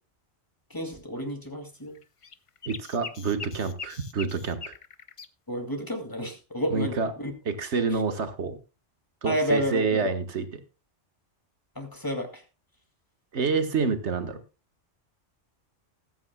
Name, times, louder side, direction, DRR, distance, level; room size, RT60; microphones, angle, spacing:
voice 1, 0.7-2.0 5.5-7.3 9.2-10.1 11.8-12.4, equal, 15° left, 4 dB, 2.5 m, -30 dB
sound 1, 1.9-5.3, left 5 dB, 35° left, 0.5 m, -41 dB
voice 2, 2.7-4.7 6.7-7.1 7.4-8.6 9.2-10.6 13.3-14.4, right 4 dB, 70° right, 8 dB, 1.6 m, -28 dB
20.0 x 9.0 x 2.2 m, 0.30 s
omnidirectional pair, 1.2 m